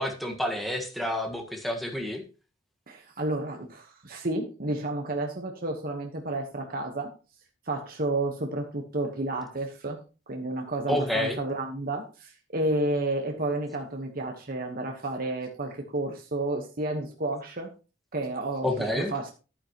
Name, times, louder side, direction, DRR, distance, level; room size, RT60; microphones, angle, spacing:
voice 1, 0.0-2.2 10.9-11.4 18.6-19.1, left 1 dB, ahead, 3 dB, 1.5 m, -29 dB
voice 2, 2.9-7.1 7.7-10.0 10.3-17.7 18.1-19.3, right 2 dB, 45° right, 3 dB, 1.2 m, -31 dB
11.0 x 9.6 x 3.0 m, 0.33 s
head